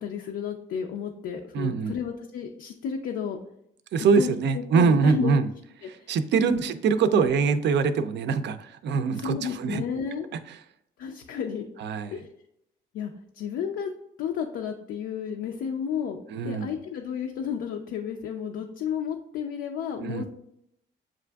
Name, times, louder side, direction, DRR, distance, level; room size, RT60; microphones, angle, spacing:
voice 1, 0.0-3.4 4.2-5.3 5.8-6.1 6.4-6.6 7.1-7.3 9.1-10.3 11.0-11.7 12.1-12.3 12.9-13.9 14.2-20.2, left 7 dB, 80° left, 2 dB, 0.5 m, -32 dB
voice 2, 1.5-1.9 3.9-5.5 5.8-9.8 11.8-12.1 16.3-16.7 20.0-20.2, right 5 dB, 60° right, 10 dB, 0.4 m, -23 dB
7.4 x 2.5 x 2.2 m, 0.77 s
cardioid pair, 90°, 20 cm